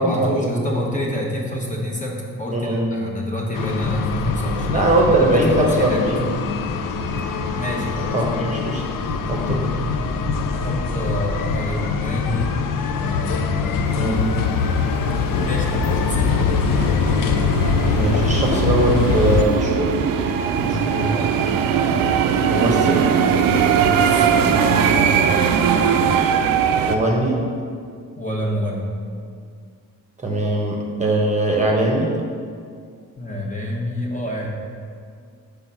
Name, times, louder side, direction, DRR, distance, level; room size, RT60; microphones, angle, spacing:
voice 1, 0.0-6.0 7.5-8.2 10.6-12.5 13.0-13.9 15.4-16.6 20.6-21.3 23.7-25.5 28.2-28.9 33.2-34.5, equal, 20° left, -2 dB, 1.1 m, -27 dB
voice 2, 2.5-2.9 4.7-6.4 8.1-8.8 9.3-9.7 14.0-14.3 17.9-20.0 22.5-23.0 26.9-27.4 30.2-32.1, right 1 dB, 20° right, -2 dB, 0.9 m, -20 dB
sound 1, 3.5-19.4, left 7 dB, 75° left, 0.5 m, -24 dB
sound 2, 3.8-19.2, left 1 dB, 60° left, 1.1 m, -29 dB
sound 3, 13.9-27.0, right 7 dB, 85° right, 0.5 m, -21 dB
5.6 x 3.6 x 5.6 m, 2.2 s
cardioid pair, 95°, 33 cm